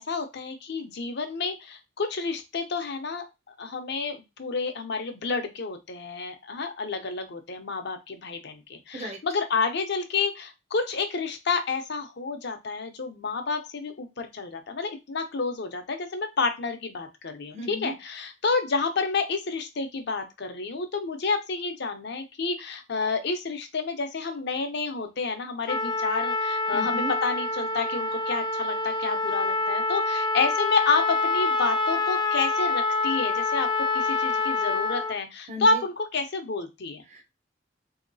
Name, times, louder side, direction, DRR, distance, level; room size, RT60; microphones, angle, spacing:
voice 1, 0.0-3.3 3.6-37.0, left 4 dB, 65° left, 6 dB, 0.7 m, -29 dB
voice 2, 17.5-17.9 26.7-27.1 35.5-35.8 37.1-37.2, equal, 40° right, 5 dB, 0.6 m, -35 dB
Trumpet, 25.7-35.2, left 3 dB, 25° left, 0.4 m, -26 dB
3.7 x 2.8 x 2.6 m, 0.24 s
head